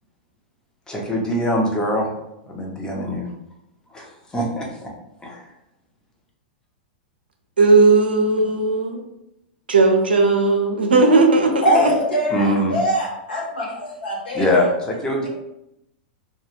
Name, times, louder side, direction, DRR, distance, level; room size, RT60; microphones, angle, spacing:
voice 1, 0.9-2.1 2.5-3.3 3.9-4.9 5.2-5.5 12.3-12.7 14.3-15.3, equal, 15° left, -1 dB, 0.7 m, -23 dB
voice 2, 7.6-9.0 9.7-11.9, right 3 dB, 90° right, 3 dB, 0.5 m, -16 dB
voice 3, 11.6-14.5, equal, 75° left, -3 dB, 1.1 m, -22 dB
2.3 x 2.3 x 3.0 m, 0.83 s
hypercardioid pair, 105°, 5 cm